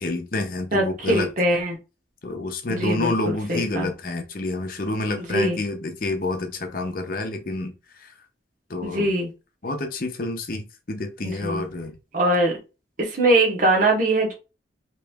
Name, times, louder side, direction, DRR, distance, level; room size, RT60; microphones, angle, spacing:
voice 1, 0.0-1.3 2.2-7.7 8.0-8.1 8.7-9.1 9.6-11.9, left 2 dB, 50° left, 0.7 m, -28 dB
voice 2, 0.7-1.8 2.7-3.9 5.2-5.6 8.8-9.3 11.2-11.6 12.1-12.6 13.0-14.3, right 1 dB, 45° right, 1.0 m, -22 dB
3.3 x 3.0 x 3.4 m
head